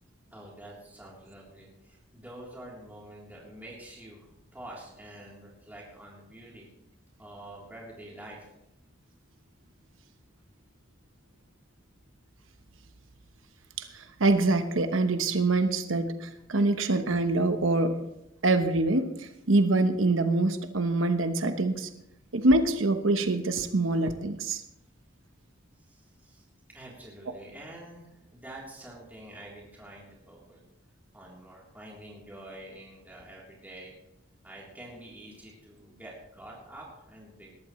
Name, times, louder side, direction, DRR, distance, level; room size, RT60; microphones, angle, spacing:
voice 1, 0.3-6.7 7.2-8.5 25.8-30.6 31.1-33.9 34.4-37.5, right 1 dB, 10° right, -5 dB, 3.4 m, -47 dB
voice 2, 13.8-18.0 18.4-21.9 22.3-24.6, right 2 dB, 90° right, 8 dB, 1.0 m, -25 dB
19.5 x 13.5 x 3.2 m, 0.84 s
head